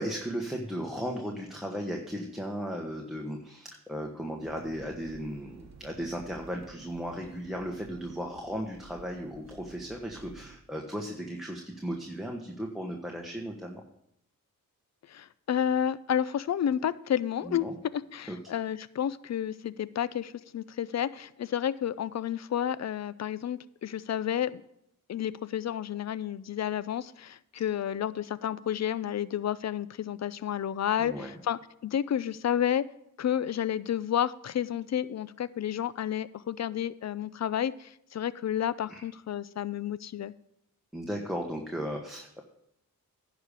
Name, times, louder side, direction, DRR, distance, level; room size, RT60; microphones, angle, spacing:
voice 1, 0.0-13.8 17.4-17.7 18.3-18.4 31.0-31.3 38.9-39.0 40.9-42.4, equal, ahead, 1 dB, 1.3 m, -36 dB
sound 1, 4.4-10.6, right 5 dB, 50° right, 1.0 m, -53 dB
voice 2, 15.1-17.7 17.9-24.6 25.1-32.9 33.2-40.3, left 10 dB, 50° left, 18 dB, 0.5 m, -31 dB
10.5 x 5.0 x 6.8 m, 0.78 s
cardioid pair, 55°, 35 cm